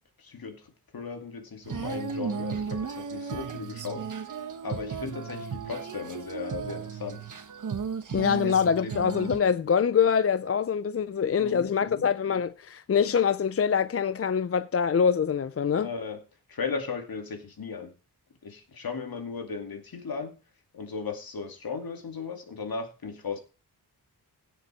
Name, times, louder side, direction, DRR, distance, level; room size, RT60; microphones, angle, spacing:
voice 1, 0.2-4.4 4.6-7.2 8.3-9.2 11.4-12.0 15.8-16.2 16.5-17.9 18.4-20.4 20.7-23.4, left 5 dB, 60° left, 2.4 m, -37 dB
Female singing, 1.6-9.4, right 6 dB, 50° right, 1.3 m, -35 dB
voice 2, 8.1-15.9, left 7 dB, 35° left, 0.5 m, -24 dB
16.5 x 6.9 x 4.4 m
wide cardioid pair, 140°, 40 cm